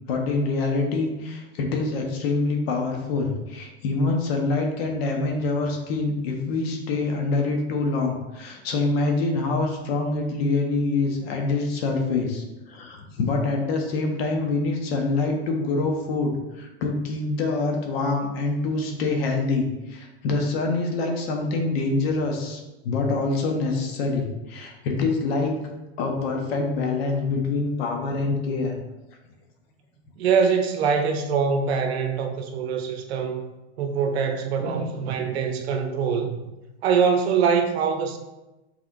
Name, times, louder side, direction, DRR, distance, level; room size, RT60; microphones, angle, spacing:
voice 1, 0.1-25.6 26.0-28.8, left 3 dB, 70° left, 1.0 m, -25 dB
voice 2, 30.2-33.4 33.8-36.4 36.8-38.2, right 6 dB, 75° right, 0.8 m, -23 dB
5.9 x 3.4 x 2.5 m
supercardioid pair, 130°, 32 cm